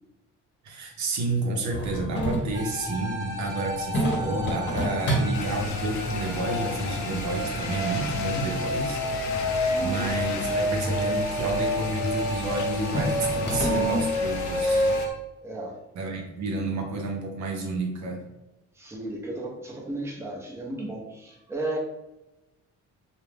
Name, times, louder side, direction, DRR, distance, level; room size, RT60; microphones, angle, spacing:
voice 1, 0.6-9.0 9.4-14.9 16.0-18.2, right 2 dB, 70° right, 1 dB, 0.7 m, -30 dB
sound 1, 1.7-14.0, right 1 dB, 35° left, 0.8 m, -33 dB
sound 2, 2.5-15.1, left 1 dB, 25° right, 1.0 m, -30 dB
sound 3, 5.3-15.1, left 2 dB, 70° left, 0.4 m, -34 dB
voice 2, 9.7-10.1 15.4-15.8 18.7-21.8, right 1 dB, 10° right, -2 dB, 0.6 m, -34 dB
2.4 x 2.1 x 3.2 m, 0.98 s
cardioid pair, 90°, 30 cm